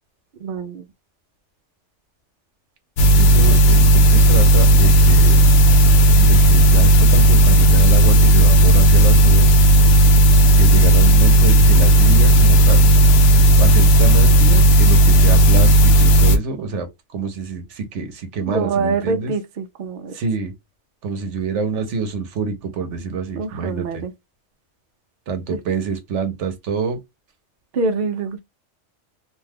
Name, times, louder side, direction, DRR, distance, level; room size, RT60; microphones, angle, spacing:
voice 1, 0.4-0.8 18.5-20.1 23.3-24.1 27.7-28.4, right 4 dB, 60° right, 0.7 m, -24 dB
sound 1, 3.0-16.4, right 1 dB, 65° left, 0.7 m, -12 dB
voice 2, 3.1-5.4 6.1-9.6 10.6-12.9 13.6-19.3 20.1-20.5 21.0-24.0 25.3-27.0, right 5 dB, 80° right, 1.1 m, -26 dB
2.6 x 2.3 x 3.3 m
omnidirectional pair, 1.2 m